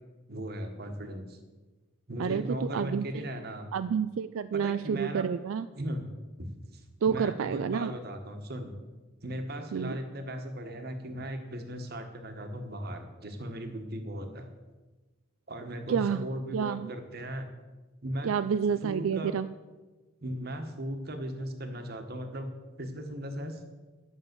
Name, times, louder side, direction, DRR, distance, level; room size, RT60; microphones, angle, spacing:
voice 1, 0.3-1.4 2.1-3.7 4.5-5.3 5.8-6.1 6.4-6.5 6.7-8.7 9.2-14.5 15.5-17.5 18.0-18.3 18.8-19.3 20.2-22.5 22.8-23.6, equal, 50° right, 6 dB, 1.3 m, -37 dB
voice 2, 2.2-3.2 3.7-5.7 7.0-7.9 9.7-9.9 15.9-16.2 16.5-16.9 18.2-19.5, right 7 dB, 80° right, 12 dB, 0.4 m, -29 dB
10.5 x 7.2 x 6.8 m, 1.2 s
head